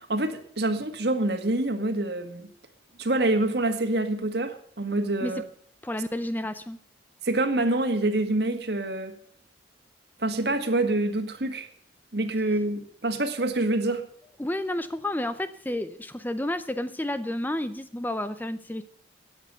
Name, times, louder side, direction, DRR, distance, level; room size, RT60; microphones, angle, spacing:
voice 1, 0.1-2.5 3.0-5.4 7.2-9.1 10.2-11.7 12.1-14.0, right 2 dB, 60° right, 7 dB, 1.8 m, -26 dB
voice 2, 5.8-6.8 14.4-18.8, left 1 dB, 10° left, 12 dB, 0.5 m, -31 dB
13.5 x 9.3 x 6.8 m, 0.63 s
head